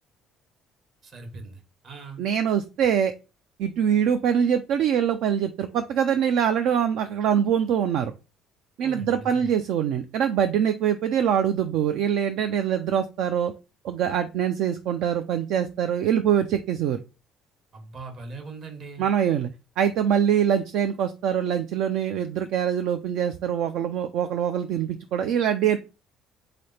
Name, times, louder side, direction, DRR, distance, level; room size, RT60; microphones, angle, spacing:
voice 1, 1.0-2.2 8.8-9.6 17.7-19.0, right 3 dB, 55° right, 4 dB, 1.5 m, -40 dB
voice 2, 2.2-3.1 3.6-8.1 8.8-13.5 13.8-17.0 19.0-19.5 19.8-25.8, right 8 dB, 75° right, 8 dB, 0.4 m, -24 dB
3.9 x 3.3 x 4.2 m, 0.31 s
supercardioid pair, 90°, 0 cm